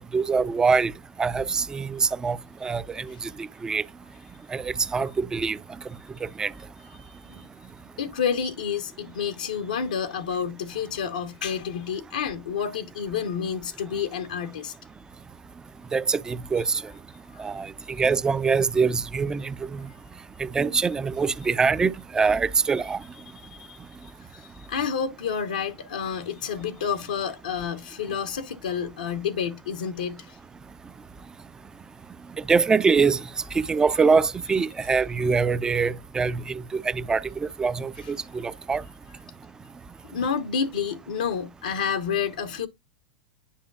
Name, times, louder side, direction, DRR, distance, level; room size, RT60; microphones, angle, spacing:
voice 1, 0.1-0.9 1.2-3.9 4.5-5.6 6.2-6.5 15.9-16.8 17.4-19.9 20.4-23.0 32.4-38.8, right 5 dB, 15° right, 0.4 m, -24 dB
voice 2, 6.9-7.7 8.0-14.7 17.4-17.5 17.8-17.9 23.5-30.4 40.1-42.7, left 7 dB, 80° left, 0.9 m, -30 dB
10.0 x 5.1 x 2.3 m
hypercardioid pair, 100°, 4 cm